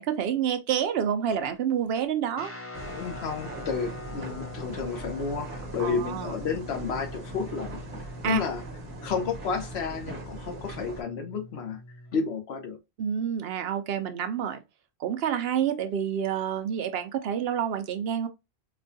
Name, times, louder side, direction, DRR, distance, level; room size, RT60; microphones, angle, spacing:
voice 1, 0.0-2.5 5.8-6.3 8.2-8.4 10.5-10.6 13.0-14.6 15.0-18.3, right 8 dB, 70° right, 0.8 m, -28 dB
Guitar, 2.3-12.2, left 1 dB, 25° left, 0.3 m, -43 dB
sound 1, 2.7-11.0, right 2 dB, 55° right, 1.2 m, -41 dB
voice 2, 2.8-7.8 8.3-8.6 9.0-11.8 12.1-12.8, left 5 dB, 80° left, 1.0 m, -31 dB
4.2 x 2.2 x 2.6 m
omnidirectional pair, 1.1 m